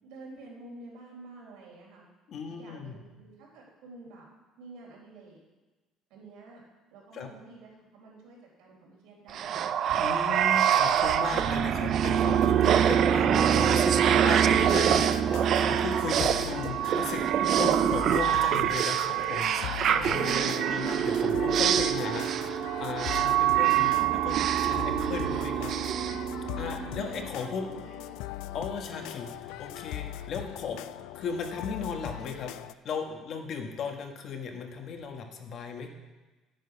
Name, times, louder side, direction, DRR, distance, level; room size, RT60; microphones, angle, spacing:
voice 1, 0.0-2.1 2.5-4.2 4.6-5.4 6.1-6.6 6.9-9.8 26.6-28.2 29.0-29.1, right 2 dB, 85° right, -3 dB, 4.1 m, -49 dB
voice 2, 2.3-3.0 7.1-7.3 10.0-17.2 17.5-19.5 19.8-25.7 26.6-27.6 28.5-30.8 31.1-32.5 32.8-35.9, left 5 dB, 45° left, 4 dB, 1.3 m, -36 dB
sound 1, 9.3-27.0, right 9 dB, 45° right, 0.4 m, -25 dB
sound 2, 14.5-32.7, left 14 dB, 90° left, 0.3 m, -40 dB
10.0 x 9.1 x 5.7 m, 1.2 s
cardioid pair, 170°, 0 cm